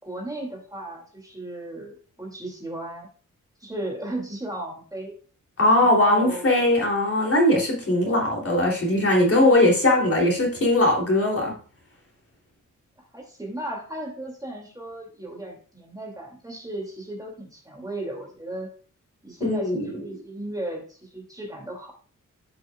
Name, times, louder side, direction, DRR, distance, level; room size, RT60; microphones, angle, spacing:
voice 1, 0.0-3.1 3.6-5.2 5.8-6.5 13.1-18.7 19.2-21.9, right 1 dB, 10° right, 0 dB, 2.5 m, -35 dB
voice 2, 5.6-11.5 19.4-19.9, left 1 dB, 45° left, -1 dB, 3.2 m, -20 dB
12.0 x 6.2 x 2.4 m, 0.42 s
cardioid pair, 80°, 32 cm